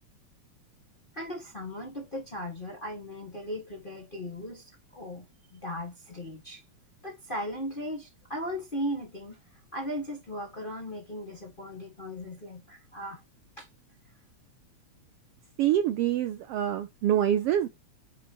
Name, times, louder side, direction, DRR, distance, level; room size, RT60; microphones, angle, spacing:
voice 1, 1.1-6.6 7.0-9.4 9.7-13.2 13.6-13.7, equal, 25° left, 1.1 m, -37 dB
voice 2, 15.6-17.7, right 11 dB, 85° right, 1.3 m, -25 dB
5.9 x 4.8 x 4.2 m
omnidirectional pair, 3.3 m